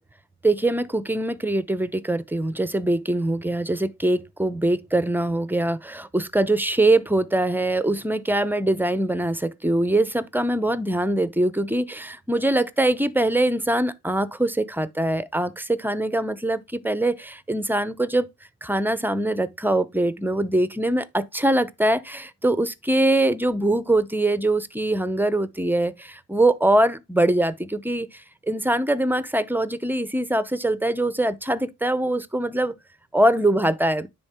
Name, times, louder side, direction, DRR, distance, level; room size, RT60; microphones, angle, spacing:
voice 1, 0.4-18.3 18.6-28.1 28.5-32.7 33.1-34.1, right 1 dB, 5° right, 0.6 m, -23 dB
9.7 x 3.8 x 3.6 m
cardioid pair, 90°, 30 cm